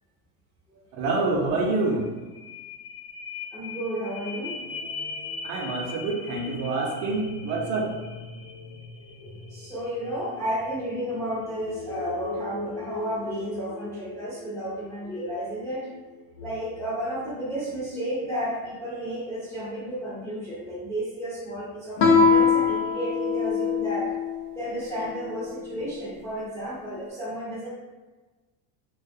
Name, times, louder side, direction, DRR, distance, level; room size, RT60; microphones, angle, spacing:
voice 1, 0.9-2.1 5.4-7.9, right 3 dB, 55° right, 0 dB, 0.5 m, -26 dB
sound 1, 2.0-17.9 18.4-18.5, left 3 dB, 85° left, 0.9 m, -40 dB
voice 2, 3.5-4.6 9.5-15.9 16.4-24.1 24.6-27.7, equal, 5° left, -10 dB, 0.4 m, -32 dB
Guitar, 22.0-24.4, left 5 dB, 55° left, 0.5 m, -21 dB
2.3 x 2.1 x 2.6 m, 1.2 s
supercardioid pair, 155°, 42 cm